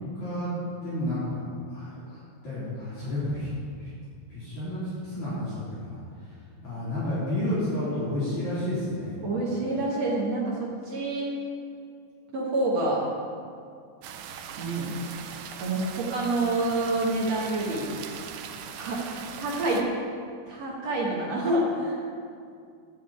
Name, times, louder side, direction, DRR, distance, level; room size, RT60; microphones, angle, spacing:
voice 1, 0.1-0.5 0.8-1.4 1.7-2.2 2.4-3.5 3.8-3.9 4.3-6.0 6.6-9.2, left 1 dB, 40° left, -12 dB, 4.8 m, -31 dB
voice 2, 9.2-11.3 12.3-13.0 14.6-15.0 15.6-17.9 18.7-19.0 19.4-19.8 20.5-22.0, right 2 dB, 70° right, -4 dB, 1.6 m, -27 dB
sound 1, 14.0-19.8, right 7 dB, 85° right, 2.4 m, -40 dB
9.9 x 7.6 x 8.6 m, 2.3 s
omnidirectional pair, 5.7 m